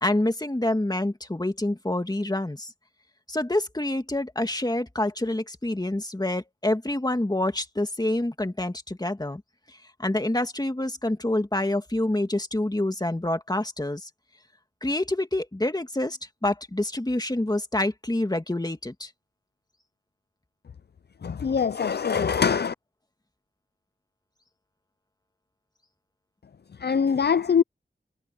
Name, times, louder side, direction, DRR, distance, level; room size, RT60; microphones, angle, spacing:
voice 1, 0.0-2.7 3.3-9.4 10.0-14.1 14.8-19.1, left 1 dB, 20° left, 2.2 m, -27 dB
voice 2, 21.2-22.7 26.8-27.6, left 6 dB, 55° left, 0.5 m, -23 dB
wide cardioid pair, 65°, 20 cm